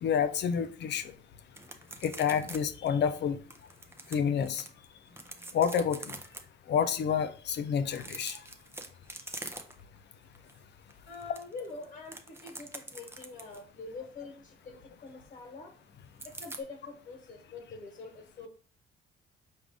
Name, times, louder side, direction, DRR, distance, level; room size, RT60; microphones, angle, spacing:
voice 1, 0.0-1.1 2.0-3.4 4.1-4.7 5.5-6.2 6.7-8.4, left 7 dB, 60° left, 10 dB, 0.5 m, -29 dB
sound 1, 1.5-2.6 2.9-3.0 3.5-4.7 5.1-6.4 7.9-10.0 10.3-10.6 10.9-13.7 16.2-16.6, right 2 dB, 10° right, 0.6 m, -44 dB
voice 2, 11.1-15.7 16.4-18.5, left 4 dB, 40° left, 1 dB, 1.3 m, -45 dB
4.8 x 2.5 x 3.4 m, 0.41 s
cardioid pair, 90°, 20 cm